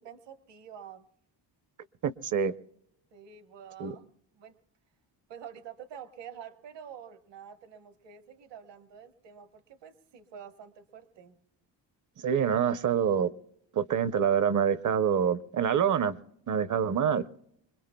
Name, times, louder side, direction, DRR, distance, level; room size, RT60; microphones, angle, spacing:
voice 1, 0.0-1.0 3.1-4.6 5.3-11.4, right 8 dB, 65° right, 9 dB, 1.2 m, -48 dB
voice 2, 2.0-2.5 3.8-4.0 12.2-13.3 13.7-16.2 16.5-17.3, right 8 dB, 40° right, 15 dB, 0.6 m, -26 dB
25.5 x 21.5 x 2.2 m, 0.74 s
cardioid pair, 105°, 45 cm